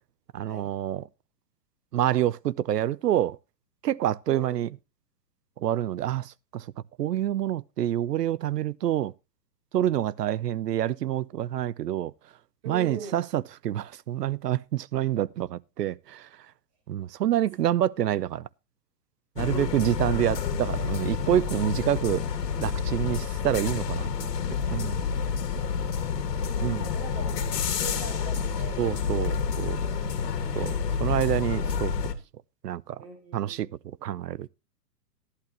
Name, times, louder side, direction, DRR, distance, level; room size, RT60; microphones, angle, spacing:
voice 1, 0.3-1.0 1.9-3.4 3.8-4.7 5.6-6.7 7.0-9.1 9.7-12.1 12.7-16.3 16.9-18.5 19.4-22.2 22.6-24.1 24.7-25.0 26.6-26.9 28.8-29.8 30.5-31.9 32.6-33.0 33.3-33.7 34.0-34.5, right 12 dB, 75° right, 0.7 m, -27 dB
voice 2, 4.3-4.7 12.6-13.2 19.7-20.1 25.7-29.3 29.8-30.8 33.0-33.7, right 4 dB, 30° right, 4.9 m, -43 dB
sound 1, 19.4-32.1, left 6 dB, 75° left, 2.2 m, -29 dB
13.5 x 11.5 x 3.0 m
hypercardioid pair, 140°, 48 cm